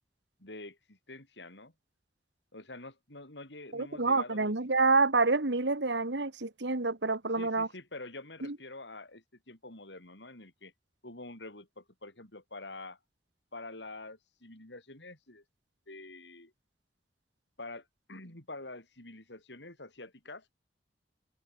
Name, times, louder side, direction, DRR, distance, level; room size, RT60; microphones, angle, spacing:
voice 1, 0.4-1.7 2.5-4.5 7.3-10.7 11.0-13.0 13.5-15.4 15.9-16.5 17.6-20.5, left 2 dB, 80° left, 7.9 m, -47 dB
voice 2, 3.7-7.7 8.4-8.6, right 3 dB, 80° right, 1.9 m, -28 dB
head